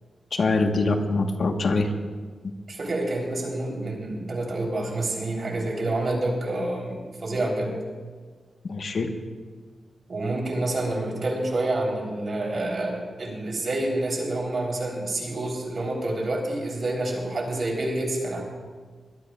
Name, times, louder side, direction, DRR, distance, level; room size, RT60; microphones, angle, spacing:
voice 1, 0.3-1.9 8.6-9.1, left 3 dB, 60° left, 4 dB, 1.3 m, -24 dB
voice 2, 2.7-7.7 10.1-18.4, right 2 dB, 50° right, -1 dB, 3.6 m, -28 dB
22.5 x 17.0 x 2.4 m, 1.5 s
wide cardioid pair, 110°, 0 cm